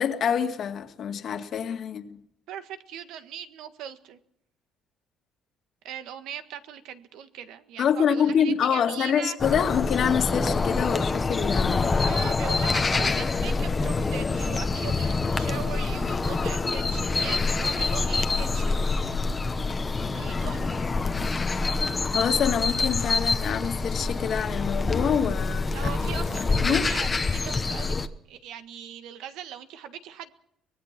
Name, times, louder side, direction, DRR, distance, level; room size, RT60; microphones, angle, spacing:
voice 1, 0.0-2.2 7.8-11.9 22.1-26.1 26.6-26.8, left 7 dB, 45° left, 1.9 m, -26 dB
voice 2, 2.5-4.2 5.8-9.4 11.9-19.0 20.1-20.8 25.7-28.0 28.3-30.3, right 9 dB, 80° right, 1.6 m, -40 dB
sound 1, 9.4-28.1, left 3 dB, 20° left, 1.0 m, -26 dB
sound 2, 11.2-25.1, right 3 dB, 25° right, 4.3 m, -49 dB
24.5 x 19.0 x 6.0 m
cardioid pair, 160°, 0 cm